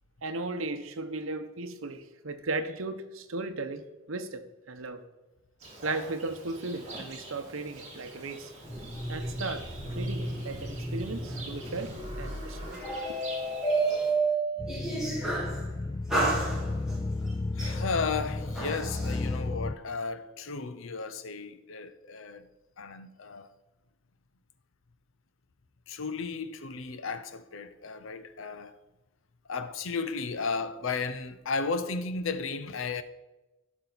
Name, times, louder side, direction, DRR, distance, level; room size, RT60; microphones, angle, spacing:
voice 1, 0.2-5.0 5.8-8.5 9.1-12.7 13.1-13.2, right 2 dB, 75° right, 1.0 m, -36 dB
Livestock farm animals working animals, 5.6-14.1, right 1 dB, 35° right, 3.0 m, -45 dB
sound 1, 8.6-15.6 16.1-17.0 17.6-19.2, right 2 dB, 5° right, 3.3 m, -32 dB
sound 2, 14.6-19.7, left 2 dB, 20° left, 0.3 m, -33 dB
voice 2, 17.6-22.5 22.8-23.5 25.9-28.7 29.5-33.0, left 4 dB, 70° left, 0.7 m, -34 dB
16.0 x 6.1 x 4.1 m
head